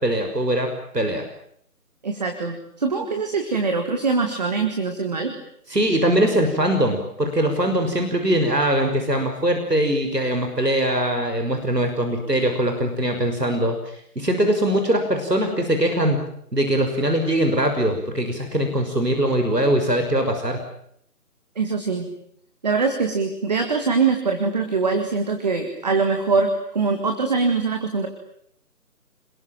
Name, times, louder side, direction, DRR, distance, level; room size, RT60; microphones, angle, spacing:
voice 1, 0.0-0.7 0.9-1.2 5.7-16.2 16.5-20.6, right 1 dB, 85° right, 5 dB, 6.2 m, -21 dB
voice 2, 2.0-5.3 21.6-22.1 22.6-28.1, right 4 dB, 25° right, 5 dB, 2.2 m, -23 dB
27.5 x 22.0 x 9.1 m, 0.70 s
figure-of-eight pair, 160°, 47 cm